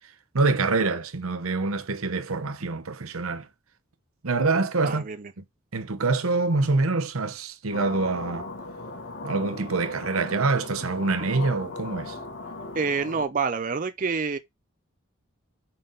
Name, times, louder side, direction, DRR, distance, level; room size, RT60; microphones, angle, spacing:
voice 1, 0.3-3.5 4.2-5.0 5.7-8.5 9.2-12.2, right 3 dB, 85° right, 0.9 m, -25 dB
voice 2, 4.8-5.3 12.7-14.4, right 5 dB, 40° right, 0.5 m, -27 dB
sound 1, 7.7-13.3, left 2 dB, 55° left, 1.3 m, -38 dB
5.6 x 4.1 x 5.2 m
head